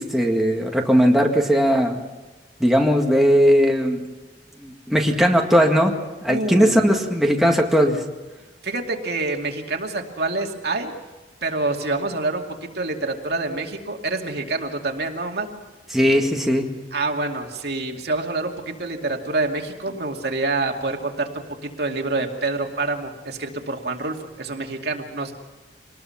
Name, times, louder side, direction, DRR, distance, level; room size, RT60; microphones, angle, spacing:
voice 1, 0.0-2.0 2.6-4.0 4.6-5.9 6.2-8.0 15.9-16.7, equal, ahead, 0 dB, 1.9 m, -18 dB
voice 2, 6.3-6.8 8.6-10.9 11.4-15.5 16.9-25.3, right 3 dB, 65° right, 2 dB, 2.4 m, -27 dB
25.5 x 19.5 x 5.8 m, 1.2 s
head